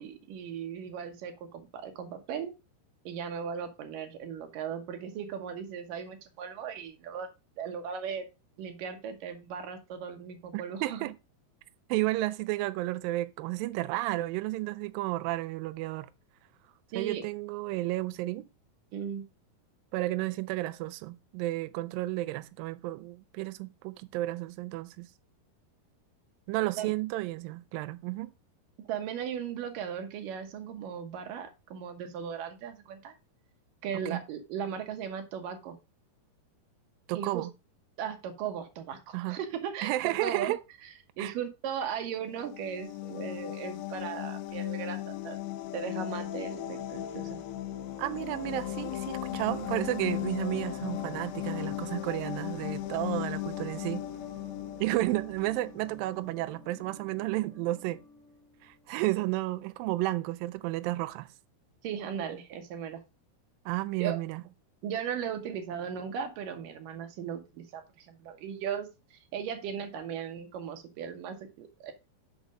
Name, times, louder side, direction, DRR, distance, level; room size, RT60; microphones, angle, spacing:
voice 1, 0.0-2.5 3.1-7.3 7.6-8.3 8.6-11.1 16.9-17.2 18.9-19.3 26.8-26.9 28.9-33.1 33.8-35.8 37.1-37.5 38.0-40.5 41.2-45.4 45.7-47.4 49.3-49.7 61.8-63.0 64.0-64.2 64.8-71.9, right 7 dB, 65° right, 2.5 m, -37 dB
voice 2, 10.5-11.2 11.9-16.1 17.0-18.5 19.9-25.1 26.5-28.3 34.1-34.2 37.1-37.5 39.1-39.4 39.8-40.6 41.2-41.3 48.0-54.0 54.8-58.0 58.6-61.3 63.7-64.4, right 18 dB, 85° right, 2.0 m, -32 dB
sound 1, 42.3-55.9, left 14 dB, 85° left, 2.1 m, -37 dB
sound 2, 45.9-58.9, left 2 dB, 40° left, 1.0 m, -48 dB
6.4 x 6.2 x 5.0 m
omnidirectional pair, 4.7 m